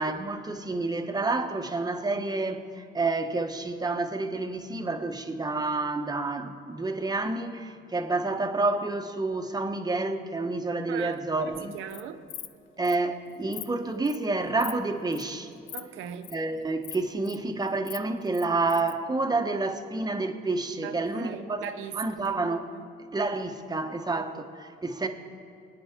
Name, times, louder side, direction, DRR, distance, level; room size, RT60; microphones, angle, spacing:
voice 1, 0.0-11.8 12.8-15.5 16.3-21.6 21.9-22.7 23.1-25.1, right 3 dB, 20° right, 1.2 m, -29 dB
voice 2, 10.9-12.2 15.7-16.4 20.8-22.8, right 9 dB, 90° right, 0.8 m, -39 dB
Insect, 11.7-12.0 12.3-12.5 12.8-13.0 13.3-13.6 14.0-14.2 14.6-14.8 15.1-15.3 15.7-15.8 16.1-16.3 16.8-17.4 17.7-18.9, left 12 dB, 80° left, 0.6 m, -41 dB
24.5 x 9.7 x 3.7 m
cardioid pair, 90°, 20 cm